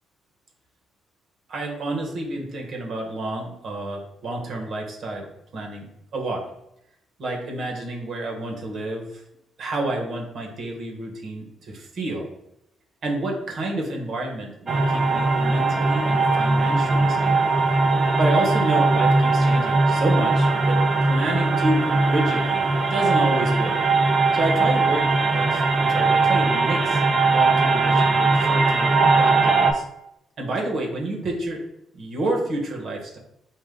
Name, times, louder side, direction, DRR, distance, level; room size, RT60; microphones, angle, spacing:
voice 1, 1.5-6.4 7.2-9.2 9.6-12.3 13.0-17.5 18.2-20.8 21.1-23.8 24.3-27.0 27.3-29.8 30.4-31.6 31.9-33.2, right 2 dB, 60° right, 0 dB, 1.0 m, -29 dB
sound 1, 14.7-29.7, right 3 dB, 40° right, 0.5 m, -20 dB
3.7 x 2.4 x 3.5 m, 0.80 s
cardioid pair, 90°, 0 cm